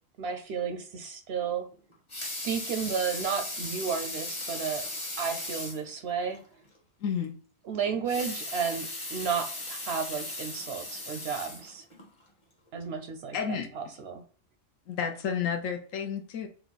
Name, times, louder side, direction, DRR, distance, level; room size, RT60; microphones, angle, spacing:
voice 1, 0.2-1.7 2.4-4.9 5.2-6.4 7.7-11.9 12.7-13.3 13.8-14.2, right 6 dB, 65° right, 7 dB, 0.7 m, -32 dB
Water tap faucet / Sink (filling or washing) / Liquid, 1.9-5.9 6.3-6.4 6.7-6.8 7.9-12.1 12.7-12.8, left 2 dB, 25° left, 1.0 m, -37 dB
voice 2, 7.0-7.3 13.3-13.7 14.9-16.5, left 7 dB, 80° left, 4 dB, 1.1 m, -31 dB
4.2 x 2.3 x 3.9 m, 0.42 s
omnidirectional pair, 1.3 m